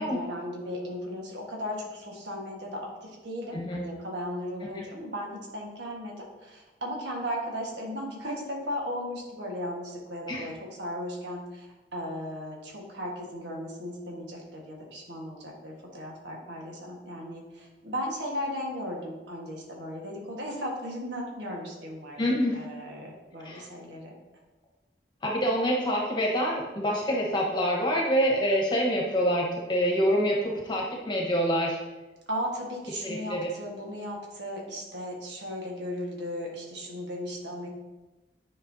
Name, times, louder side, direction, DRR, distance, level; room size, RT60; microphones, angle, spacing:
voice 1, 0.0-11.7 11.9-24.1 32.3-37.7, equal, 75° right, -1 dB, 1.5 m, -36 dB
voice 2, 3.5-3.9 4.7-4.8 10.3-10.5 22.2-22.5 23.4-23.6 25.2-31.8 33.0-33.5, equal, 25° left, -2 dB, 1.2 m, -26 dB
9.8 x 5.4 x 2.7 m, 1.1 s
head